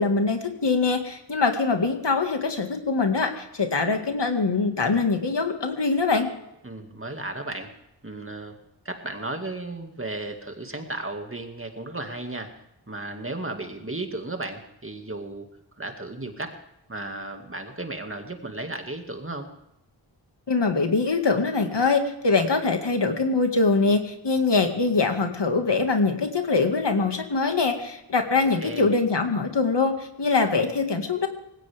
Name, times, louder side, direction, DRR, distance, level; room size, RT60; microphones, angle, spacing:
voice 1, 0.0-6.3 20.5-31.3, left 4 dB, 70° left, 5 dB, 2.1 m, -23 dB
voice 2, 6.6-7.7 8.0-8.6 8.8-12.5 12.9-15.5 15.8-16.6 16.9-19.5 28.6-28.9, right 2 dB, 30° right, 4 dB, 2.2 m, -34 dB
19.5 x 16.5 x 3.6 m, 0.85 s
wide cardioid pair, 75°, 43 cm